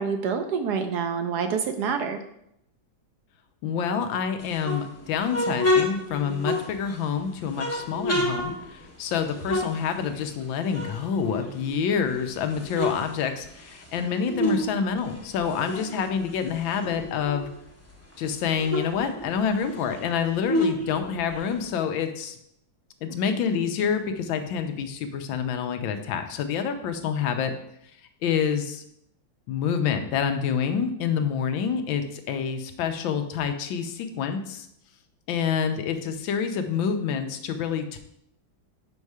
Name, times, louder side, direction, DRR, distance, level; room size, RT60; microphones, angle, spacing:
voice 1, 0.0-2.2, right 6 dB, 70° right, 6 dB, 1.0 m, -27 dB
voice 2, 3.6-17.5 18.2-22.4 23.0-27.5 28.2-28.8 29.5-34.7 35.3-38.0, left 7 dB, 85° left, 7 dB, 1.4 m, -27 dB
sound 1, 4.4-7.1 7.5-10.4 10.7-12.0 12.4-14.7 15.0-17.5 17.9-18.0 18.2-21.7, left 1 dB, 20° left, 0.4 m, -29 dB
5.5 x 5.4 x 4.8 m, 0.76 s
omnidirectional pair, 2.1 m